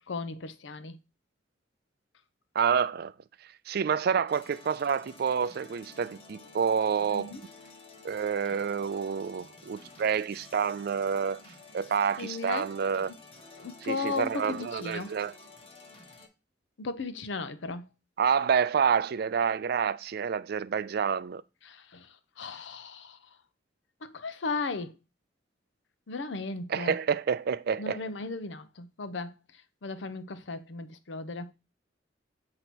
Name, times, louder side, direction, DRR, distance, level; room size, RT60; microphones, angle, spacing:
voice 1, 0.1-1.0 7.1-7.4 12.2-12.7 13.6-15.2 16.8-17.9 21.6-23.2 24.0-25.0 26.1-27.0 27.8-29.3 29.8-31.5, left 3 dB, 75° left, 0.7 m, -36 dB
voice 2, 2.6-3.1 3.7-7.3 8.0-11.4 11.7-13.1 13.9-15.3 18.2-21.4 26.7-28.0, right 6 dB, 55° right, 0.4 m, -28 dB
sound 1, 4.3-16.3, left 3 dB, 30° left, 1.0 m, -52 dB
8.1 x 2.9 x 6.0 m
head